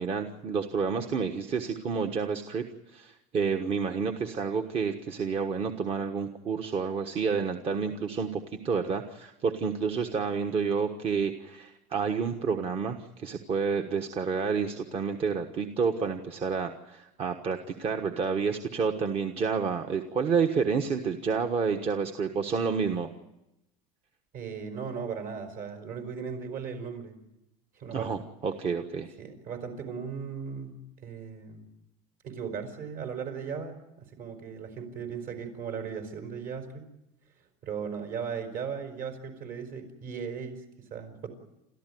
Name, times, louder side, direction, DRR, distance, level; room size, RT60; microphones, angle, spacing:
voice 1, 0.0-2.6 2.9-23.1 27.9-29.1, right 5 dB, 35° right, 5 dB, 1.3 m, -29 dB
voice 2, 24.3-27.2 27.8-28.1 29.2-31.7 32.2-36.8 37.6-41.3, right 6 dB, 55° right, 5 dB, 5.0 m, -37 dB
29.5 x 14.0 x 9.4 m, 0.92 s
cardioid pair, 140°, 17 cm